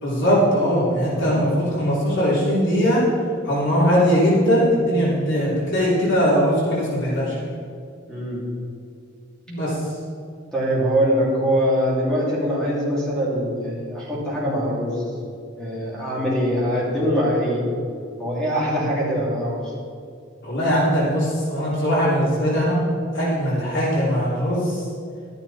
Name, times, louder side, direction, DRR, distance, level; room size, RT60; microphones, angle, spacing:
voice 1, 0.0-3.0 3.4-7.5 9.5-9.8 20.4-22.8 23.1-24.8, equal, 60° left, -7 dB, 3.4 m, -20 dB
voice 2, 8.1-8.4 10.5-15.0 15.6-17.6 18.2-19.6, equal, 5° left, -8 dB, 3.2 m, -23 dB
12.5 x 10.0 x 4.3 m, 2.4 s
head